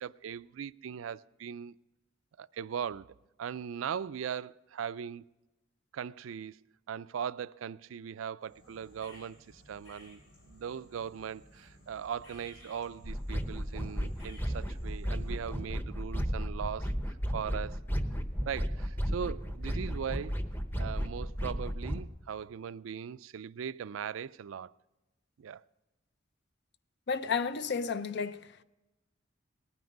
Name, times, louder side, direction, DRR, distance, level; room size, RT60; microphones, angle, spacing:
voice 1, 0.0-1.7 2.4-5.2 5.9-6.6 6.9-10.2 10.5-16.9 17.3-17.8 18.4-20.4 20.8-24.7 25.4-25.6, right 7 dB, 85° right, 0.4 m, -39 dB
sound 1, 8.4-15.7, equal, 85° left, 3.7 m, -57 dB
sound 2, 13.0-22.0, equal, 10° left, 0.8 m, -34 dB
voice 2, 27.1-28.6, left 5 dB, 55° left, 0.5 m, -32 dB
19.0 x 9.5 x 5.2 m
head